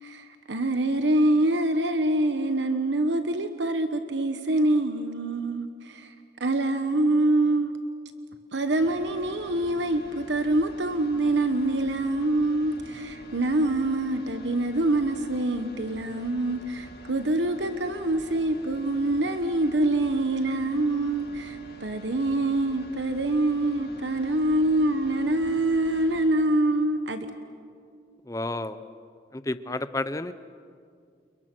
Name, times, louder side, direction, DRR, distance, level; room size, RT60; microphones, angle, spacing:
voice 1, 0.0-6.1 6.4-7.7 8.5-27.3, right 1 dB, 85° right, 8 dB, 1.2 m, -25 dB
sound 1, 8.8-26.3, right 1 dB, 60° left, 2.2 m, -47 dB
voice 2, 28.3-28.8 29.3-30.3, left 2 dB, 20° left, 12 dB, 0.7 m, -31 dB
29.5 x 29.0 x 6.2 m, 2.3 s
head